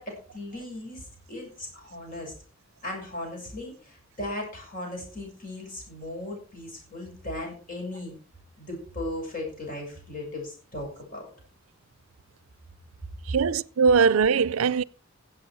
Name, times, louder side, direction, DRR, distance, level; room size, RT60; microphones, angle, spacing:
voice 1, 0.0-2.3 2.8-8.2 8.6-11.3 13.3-13.4, left 1 dB, 40° left, 6.7 m, -37 dB
voice 2, 13.3-14.8, right 5 dB, 80° right, 0.5 m, -21 dB
16.0 x 8.0 x 4.7 m
head